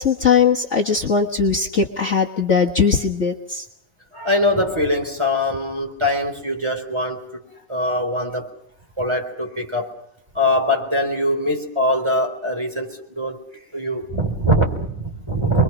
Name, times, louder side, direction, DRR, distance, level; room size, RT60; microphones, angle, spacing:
voice 1, 0.0-3.6, left 6 dB, 45° left, 1 dB, 1.7 m, -19 dB
voice 2, 4.1-7.4 7.7-8.5 9.0-9.9 10.3-13.4 13.7-15.6, equal, 15° right, 3 dB, 3.9 m, -22 dB
28.5 x 22.0 x 6.0 m, 0.76 s
omnidirectional pair, 1.9 m